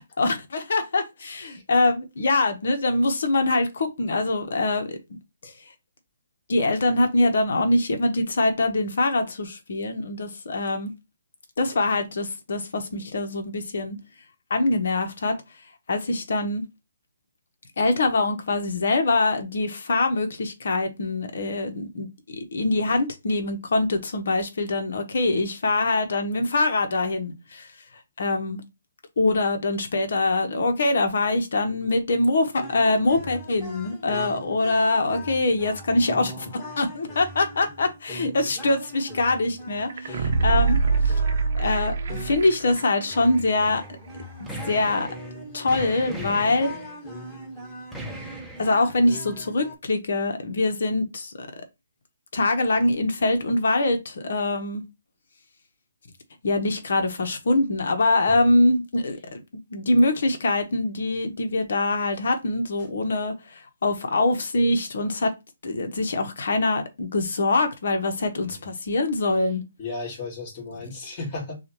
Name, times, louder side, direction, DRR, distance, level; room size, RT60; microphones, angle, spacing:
voice 1, 0.0-5.0 5.4-5.5 6.5-10.9 11.6-14.0 14.5-15.4 15.9-16.6 17.8-27.7 28.2-28.6 29.2-36.5 36.8-40.8 41.0-41.2 41.6-43.8 44.4-45.1 45.5-46.7 48.6-51.5 52.3-54.8 56.4-65.3 65.6-69.6, left 2 dB, 65° left, 1.1 m, -24 dB
sound 1, 32.5-49.7, equal, 15° left, 1.8 m, -41 dB
sound 2, 39.9-42.8 43.1-43.2, right 4 dB, 55° right, 0.7 m, -23 dB
sound 3, 43.6-43.9 44.2-45.3 45.7-47.0 47.9-48.7, right 1 dB, ahead, 0.9 m, -38 dB
voice 2, 69.8-71.6, left 3 dB, 35° left, 2.5 m, -36 dB
6.1 x 2.5 x 3.0 m
hypercardioid pair, 145°, 0 cm